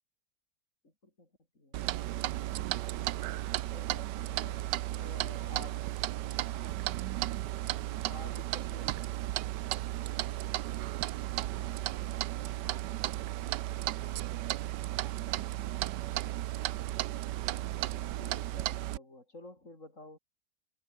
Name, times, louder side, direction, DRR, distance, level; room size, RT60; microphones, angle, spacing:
voice 1, 0.8-1.3 1.5-1.8 3.5-5.8 8.1-9.4 13.4-13.6 17.7-20.2, left 2 dB, 45° left, 6.8 m, -51 dB
Clock, 1.7-19.0, right 15 dB, 85° right, 1.3 m, -34 dB
voice 2, 5.4-6.0 6.5-6.9, right 2 dB, 40° right, 5.7 m, -61 dB
omnidirectional pair, 1.8 m